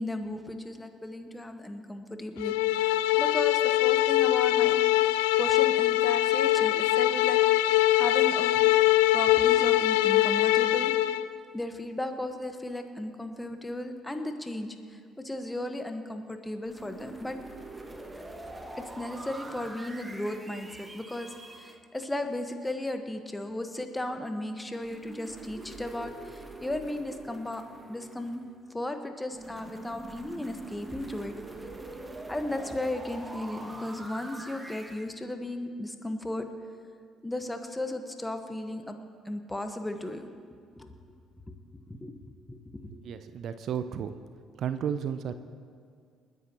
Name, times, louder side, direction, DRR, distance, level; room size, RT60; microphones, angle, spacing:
voice 1, 0.0-4.7 5.0-7.4 7.9-8.6 9.1-10.9 11.5-17.4 19.0-27.6 27.9-28.5 28.7-31.3 32.3-36.5 37.2-39.0 39.2-40.3 40.7-40.9 41.9-42.1 42.5-42.9, left 1 dB, 10° left, 6 dB, 1.4 m, -35 dB
sound 1, 2.4-11.2, left 15 dB, 75° left, 0.3 m, -23 dB
sound 2, 16.7-21.7 24.8-28.6 29.3-35.1, right 1 dB, 15° right, 1.4 m, -44 dB
voice 2, 42.9-44.1 44.6-45.4, right 8 dB, 55° right, 11 dB, 0.6 m, -33 dB
28.5 x 10.0 x 3.0 m, 2.2 s
figure-of-eight pair, 50°, 0 cm